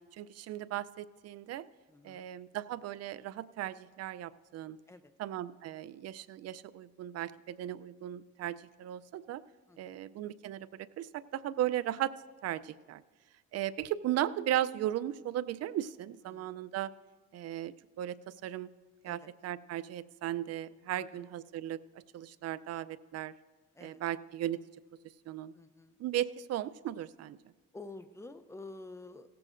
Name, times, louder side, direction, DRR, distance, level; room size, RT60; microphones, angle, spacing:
voice 1, 0.1-1.7 2.0-4.8 5.2-9.4 9.8-12.1 12.4-13.0 13.5-16.9 17.3-18.7 19.0-21.8 22.1-23.3 23.8-24.6 25.3-25.5 26.0-27.4, right 12 dB, 50° right, 17 dB, 0.4 m, -36 dB
voice 2, 1.9-2.3 4.9-5.1 9.7-10.0 16.3-16.7 19.0-19.3 21.0-21.2 23.7-24.0 25.5-26.0 27.7-29.3, left 2 dB, 10° left, 10 dB, 0.5 m, -50 dB
17.0 x 14.5 x 2.5 m, 1.4 s
cardioid pair, 115°, 32 cm